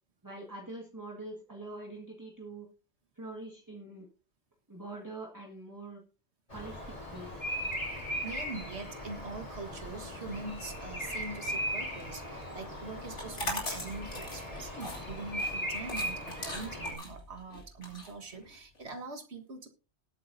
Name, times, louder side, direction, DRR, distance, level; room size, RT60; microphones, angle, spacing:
voice 1, 0.2-2.7 3.2-4.1 4.7-6.0 6.5-7.4, right 2 dB, 15° right, -1 dB, 1.8 m, -44 dB
Bird vocalization bird call bird song, 6.5-16.9, equal, 30° left, 3.5 m, -38 dB
voice 2, 7.9-19.7, right 3 dB, 70° right, 5 dB, 1.8 m, -43 dB
sound 1, 13.1-18.8, left 1 dB, 90° left, 3.4 m, -40 dB
19.0 x 8.5 x 2.7 m, 0.34 s
omnidirectional pair, 1.2 m